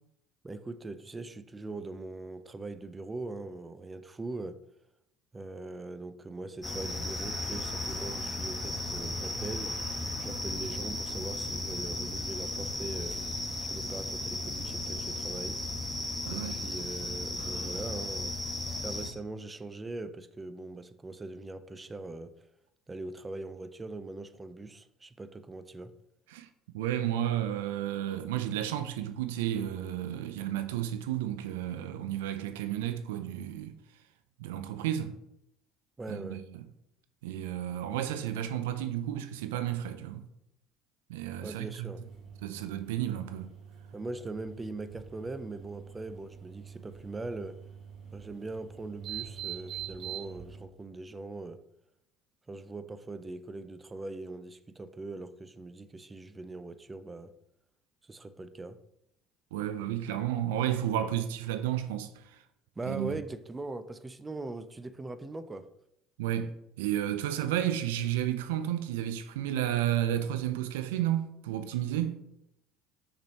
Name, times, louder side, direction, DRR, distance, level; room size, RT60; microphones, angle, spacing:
voice 1, 0.4-4.6 5.3-9.8 10.2-13.2 13.6-15.6 16.3-18.4 18.8-22.5 22.9-25.9 36.0-36.4 41.4-42.0 43.9-47.6 48.1-51.6 52.5-57.3 58.0-58.8 62.8-65.7, right 2 dB, 20° right, 0.5 m, -41 dB
sound 1, 6.6-19.1, left 1 dB, 10° left, 1.3 m, -35 dB
voice 2, 16.2-16.6 26.3-26.5 26.7-33.7 34.4-35.1 36.1-36.6 37.2-40.2 41.1-41.9 42.4-43.5 59.5-62.4 62.9-63.2 66.2-72.2, right 11 dB, 75° right, 0.4 m, -32 dB
sound 2, 41.9-50.6, right 9 dB, 50° right, 2.6 m, -45 dB
6.3 x 5.9 x 2.9 m
hypercardioid pair, 65°, 0 cm